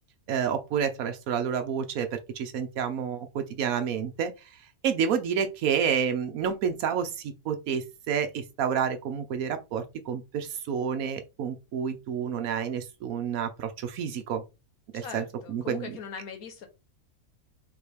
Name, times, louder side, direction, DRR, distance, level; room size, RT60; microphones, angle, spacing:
voice 1, 0.3-4.5 4.8-14.4 14.9-16.0, right 7 dB, 70° right, 1.2 m, -29 dB
voice 2, 14.9-16.7, left 6 dB, 70° left, 1.4 m, -41 dB
5.2 x 2.6 x 3.3 m
omnidirectional pair, 1.6 m